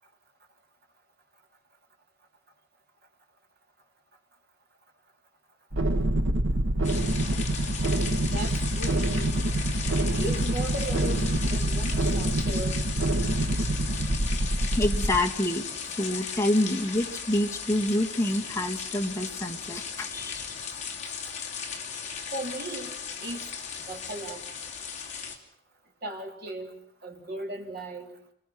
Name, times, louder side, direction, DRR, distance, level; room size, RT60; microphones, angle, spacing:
sound 1, 5.7-15.2, right 1 dB, 75° right, 1.3 m, -26 dB
sound 2, 6.8-25.4, left 6 dB, 35° left, 2.9 m, -37 dB
voice 1, 8.3-9.3 10.1-12.8 22.3-22.9 23.2-23.4 23.9-24.4 26.0-26.7 27.0-28.1, right 1 dB, 50° right, 1 dB, 3.7 m, -36 dB
voice 2, 14.7-20.5, left 1 dB, 15° left, 0 dB, 1.7 m, -27 dB
29.0 x 20.5 x 6.1 m, 0.65 s
head